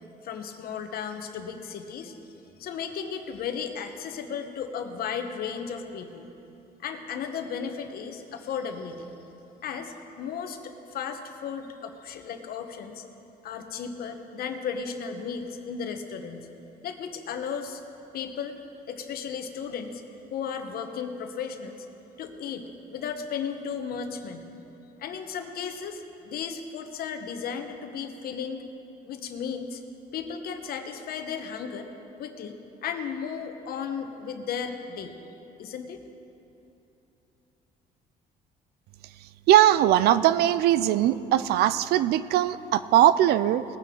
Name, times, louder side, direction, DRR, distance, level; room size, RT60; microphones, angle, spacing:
voice 1, 0.2-2.2 2.6-6.2 6.8-9.1 9.6-13.0 13.4-16.5 16.8-17.8 18.1-18.6 18.9-20.0 20.3-21.9 22.2-24.5 25.0-28.7 29.0-29.8 30.1-31.9 32.2-35.2 35.6-36.0, left 6 dB, 65° left, 6 dB, 1.1 m, -35 dB
voice 2, 39.5-43.6, right 12 dB, 75° right, 15 dB, 0.4 m, -20 dB
19.5 x 9.2 x 3.8 m, 3.0 s
cardioid pair, 110°, 17 cm